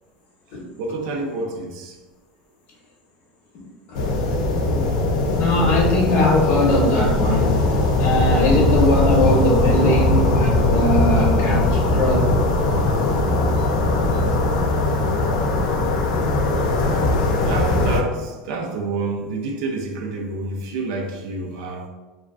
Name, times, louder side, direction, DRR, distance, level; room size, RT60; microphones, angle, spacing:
voice 1, 0.8-2.0 13.6-13.7 14.1-14.2 15.8-16.1 17.4-21.9, right 3 dB, 75° right, 0.4 m, -28 dB
voice 2, 3.5-4.0 4.7-4.8 5.4-7.5 8.0-12.4, left 1 dB, 60° left, 0.8 m, -21 dB
sound 1, 3.9-18.0, left 2 dB, 85° left, 0.4 m, -20 dB
2.4 x 2.3 x 2.3 m
supercardioid pair, 105°, 4 cm